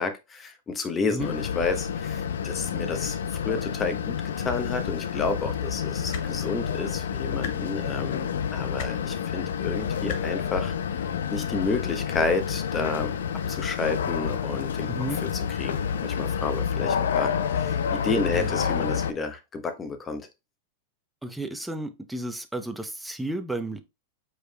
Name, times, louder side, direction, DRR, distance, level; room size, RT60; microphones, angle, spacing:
voice 1, 0.0-3.2 3.4-10.8 11.3-13.1 13.5-15.1 15.6-20.2, left 4 dB, 20° left, 1.0 m, -31 dB
sound 1, 1.2-19.1, left 7 dB, 80° left, 0.5 m, -29 dB
sound 2, 6.1-6.3 7.4-7.5 8.8-8.9 10.1-10.2 11.4-11.5, left 6 dB, 60° left, 0.9 m, -33 dB
voice 2, 14.9-15.2 18.3-18.5 21.2-23.8, right 2 dB, 5° right, 0.7 m, -33 dB
4.9 x 4.8 x 2.2 m
hypercardioid pair, 105°, 0 cm